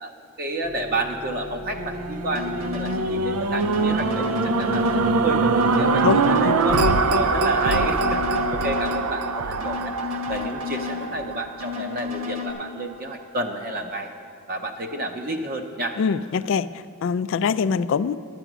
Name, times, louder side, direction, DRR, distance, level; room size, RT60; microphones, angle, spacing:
voice 1, 0.0-9.9 10.3-14.1 14.5-16.0, right 2 dB, 45° right, 3 dB, 0.7 m, -30 dB
sound 1, 0.6-8.6, left 2 dB, 15° left, 0.7 m, -37 dB
sound 2, 1.6-11.9 12.5-12.6, right 3 dB, 85° right, 0.5 m, -23 dB
sound 3, 2.3-3.1 3.6-5.1 5.6-7.1 7.6-9.1 9.6-11.1 11.6-12.5, left 6 dB, 65° right, 1.9 m, -32 dB
voice 2, 6.0-6.9 16.0-18.1, left 6 dB, 60° left, 15 dB, 0.3 m, -24 dB
11.0 x 9.1 x 6.1 m, 2.2 s
head